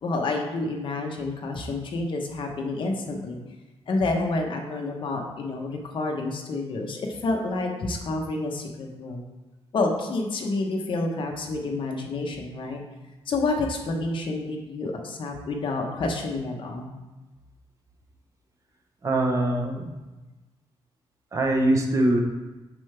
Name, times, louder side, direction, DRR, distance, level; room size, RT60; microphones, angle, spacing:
voice 1, 0.0-3.4 3.9-9.2 9.7-12.8 13.3-16.9, left 2 dB, 50° left, 1 dB, 1.0 m, -29 dB
voice 2, 19.0-19.9 21.3-22.2, right 1 dB, 30° right, 2 dB, 0.8 m, -23 dB
7.4 x 5.4 x 3.4 m, 1.2 s
wide cardioid pair, 160°, 11 cm